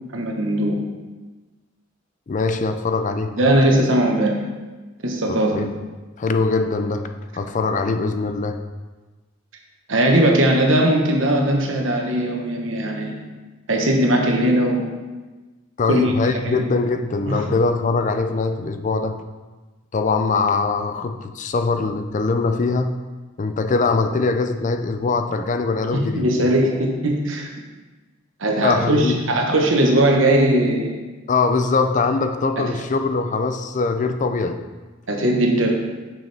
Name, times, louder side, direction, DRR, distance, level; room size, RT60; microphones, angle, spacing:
voice 1, 0.1-0.7 3.3-4.4 5.0-5.5 9.9-13.2 13.7-14.8 15.9-16.1 16.4-16.6 17.3-17.4 25.9-27.5 28.4-30.9 32.6-32.7 35.1-35.7, right 1 dB, 85° right, 1 dB, 1.2 m, -19 dB
voice 2, 2.3-3.3 5.3-5.8 6.2-8.6 15.8-19.2 19.9-23.0 23.4-26.3 28.6-29.2 31.3-34.6, left 4 dB, 40° left, 8 dB, 0.4 m, -22 dB
6.6 x 6.3 x 3.4 m, 1.3 s
head